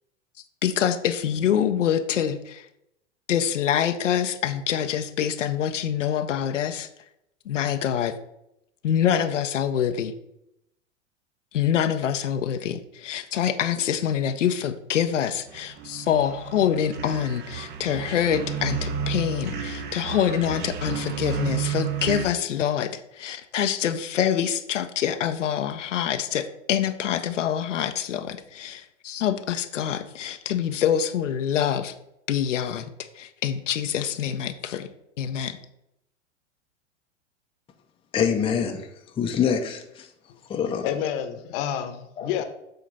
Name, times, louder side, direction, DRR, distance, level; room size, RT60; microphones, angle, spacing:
voice 1, 0.6-2.7 3.3-6.9 7.5-8.2 8.8-10.1 11.5-31.9 32.3-32.9 33.1-34.9 35.2-35.6, left 9 dB, 80° left, 0.6 m, -25 dB
sound 1, 15.5-22.2, right 8 dB, 30° right, 0.6 m, -32 dB
voice 2, 38.1-38.9 39.2-40.1 40.5-40.9 42.2-42.4, left 7 dB, 15° left, 0.6 m, -25 dB
voice 3, 40.8-42.4, left 9 dB, 50° left, 1.0 m, -29 dB
7.7 x 2.9 x 5.3 m
hypercardioid pair, 100°, 36 cm